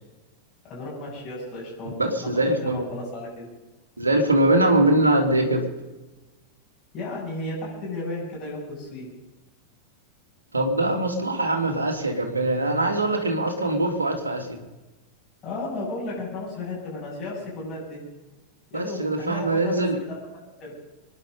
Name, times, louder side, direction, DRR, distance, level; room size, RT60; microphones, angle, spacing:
voice 1, 0.6-3.5 6.9-9.1 15.4-18.0 18.7-20.1 20.6-20.7, left 2 dB, 30° left, -6 dB, 7.7 m, -34 dB
voice 2, 1.9-2.8 4.0-5.6 10.5-14.6 18.7-20.0, right 1 dB, 80° right, 3 dB, 2.6 m, -22 dB
25.0 x 10.5 x 5.4 m, 1.1 s
figure-of-eight pair, 90°, 0 cm